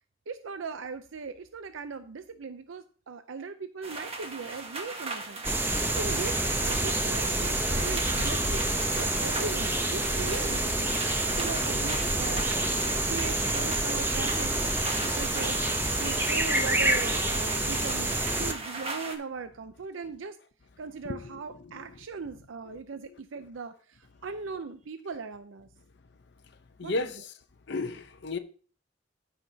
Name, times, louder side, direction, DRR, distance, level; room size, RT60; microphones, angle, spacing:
voice 1, 0.3-12.7 13.1-18.1 18.4-20.4 20.8-25.7 26.8-27.2, right 4 dB, 85° right, 0.5 m, -39 dB
sound 1, 3.8-19.2, right 3 dB, 30° right, 1.3 m, -38 dB
sound 2, 4.4-16.0, left 1 dB, 10° left, 1.5 m, -52 dB
sound 3, 5.4-18.5, right 1 dB, 10° right, 0.8 m, -28 dB
voice 2, 26.8-27.3 27.7-28.4, left 3 dB, 60° left, 0.7 m, -32 dB
14.0 x 5.8 x 2.7 m
head